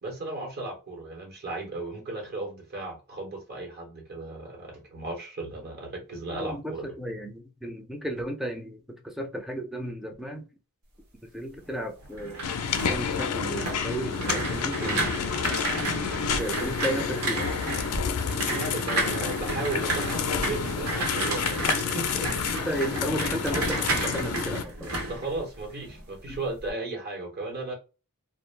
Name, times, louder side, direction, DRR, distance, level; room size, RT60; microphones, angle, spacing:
voice 1, 0.0-7.0 14.8-15.1 18.4-22.3 25.0-27.7, right 2 dB, 45° right, 0.9 m, -35 dB
voice 2, 6.3-10.5 11.3-12.5 12.8-15.3 16.4-17.5 22.5-24.9 26.3-26.4, equal, ahead, 0.4 m, -34 dB
sound 1, 12.0-26.0 26.3-26.7, right 2 dB, 75° right, 0.9 m, -32 dB
sound 2, 12.4-24.6, left 6 dB, 80° left, 0.4 m, -30 dB
2.3 x 2.0 x 3.1 m
head